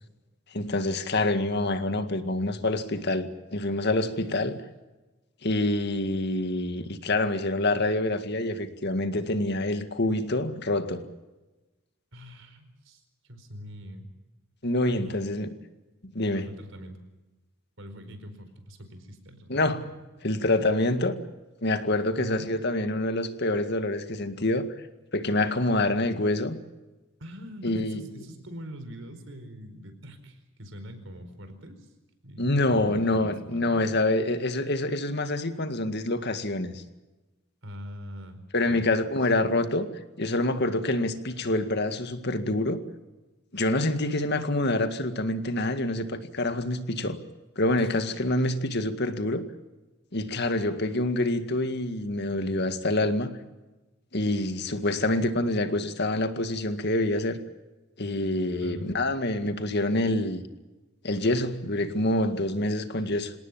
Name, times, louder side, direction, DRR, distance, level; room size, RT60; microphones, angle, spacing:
voice 1, 0.5-4.6 5.4-11.0 14.6-15.5 16.0-16.4 19.5-19.8 20.2-21.2 21.6-24.7 25.1-26.6 27.6-28.1 32.4-36.8 38.5-39.9 40.2-42.8 43.5-47.2 47.6-49.4 50.1-53.4 54.1-57.4 58.0-60.4 61.0-63.3, left 2 dB, 55° left, 2.0 m, -26 dB
voice 2, 12.1-14.1 14.9-15.3 16.3-17.0 17.8-20.0 22.2-22.5 27.2-31.9 32.2-33.8 37.6-38.4 38.7-38.9 47.8-47.9 58.6-58.9, equal, 70° right, 4.7 m, -43 dB
27.0 x 18.0 x 7.5 m
head